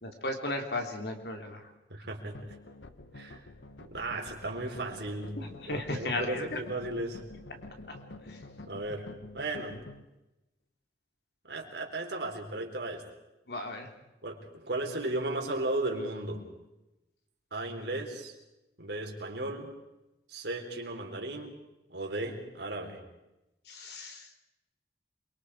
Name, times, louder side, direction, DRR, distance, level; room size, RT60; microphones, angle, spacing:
voice 1, 0.0-1.7 5.3-6.9 7.9-8.0 8.3-8.4 13.5-13.9 23.7-24.3, left 2 dB, 65° left, 4 dB, 3.4 m, -36 dB
voice 2, 1.9-2.4 3.1-3.4 3.8-5.4 5.7-7.2 8.7-9.8 11.4-13.0 14.2-16.4 17.5-18.3 18.8-19.7 20.3-21.6 21.9-23.0, right 2 dB, 70° right, 1 dB, 4.1 m, -35 dB
sound 1, 2.3-10.0, left 2 dB, 90° left, 1.3 m, -48 dB
28.0 x 23.5 x 4.9 m, 0.96 s
head